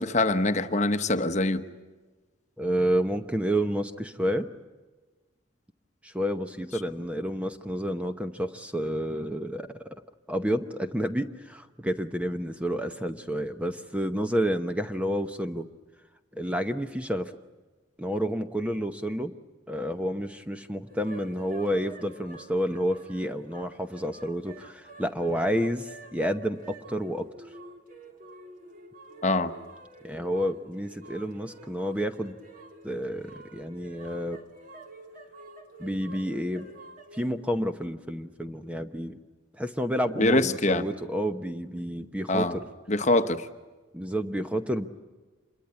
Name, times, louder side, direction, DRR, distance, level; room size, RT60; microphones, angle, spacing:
voice 1, 0.0-1.6 29.2-29.5 40.2-40.8 42.3-42.5 42.9-43.5, left 2 dB, 35° left, 9 dB, 1.0 m, -24 dB
voice 2, 2.6-4.5 6.0-10.0 10.3-15.7 16.3-17.3 18.0-19.3 19.7-27.3 30.0-32.4 32.8-34.4 35.8-36.7 37.1-39.2 39.6-42.7 43.9-44.9, equal, 5° right, 8 dB, 0.8 m, -30 dB
sound 1, 20.9-37.3, right 2 dB, 45° right, 2.8 m, -49 dB
27.0 x 22.5 x 9.6 m, 1.3 s
head